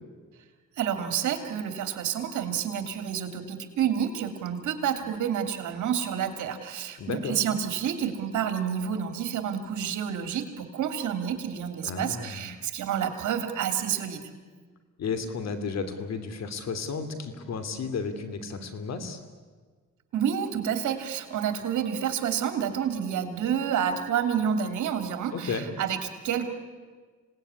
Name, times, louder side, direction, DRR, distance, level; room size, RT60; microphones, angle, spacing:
voice 1, 0.8-14.2 20.1-26.5, right 8 dB, 75° right, 7 dB, 3.1 m, -29 dB
voice 2, 7.0-7.4 11.8-12.5 15.0-19.2 25.3-25.7, left 5 dB, 60° left, 9 dB, 3.0 m, -33 dB
27.0 x 18.5 x 9.8 m, 1.5 s
cardioid pair, 90°, 30 cm